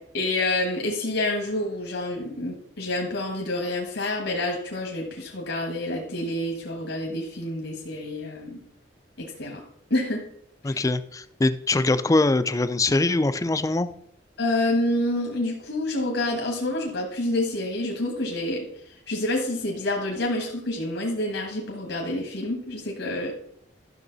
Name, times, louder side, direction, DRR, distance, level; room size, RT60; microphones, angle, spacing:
voice 1, 0.1-8.6 9.2-9.6 9.9-10.2 10.6-10.8 14.4-23.3, left 1 dB, 75° left, 1 dB, 1.5 m, -28 dB
voice 2, 10.6-13.9, left 2 dB, 15° left, 12 dB, 0.4 m, -23 dB
12.0 x 6.3 x 4.0 m, 0.71 s
head